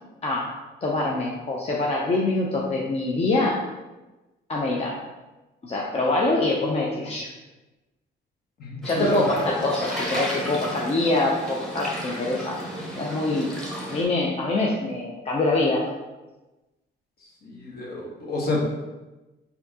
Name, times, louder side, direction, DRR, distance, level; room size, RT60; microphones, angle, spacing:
voice 1, 0.2-0.5 0.8-3.6 4.5-5.0 5.6-7.3 8.8-12.6 13.0-13.6 13.9-15.9, left 2 dB, 30° left, -3 dB, 0.5 m, -24 dB
voice 2, 8.6-9.2 17.4-18.7, left 1 dB, 50° left, -2 dB, 1.1 m, -28 dB
sound 1, 8.8-14.0, equal, ahead, 1.1 m, -33 dB
4.3 x 2.7 x 2.8 m, 1.1 s
cardioid pair, 90°, 20 cm